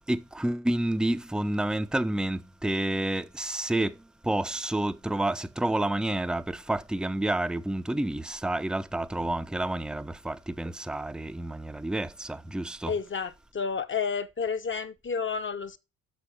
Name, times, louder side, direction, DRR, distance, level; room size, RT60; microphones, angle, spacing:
voice 1, 0.1-12.9, right 1 dB, ahead, 0.6 m, -29 dB
voice 2, 12.9-15.8, left 5 dB, 30° left, 0.9 m, -31 dB
6.5 x 6.2 x 7.0 m
hypercardioid pair, 60°, 37 cm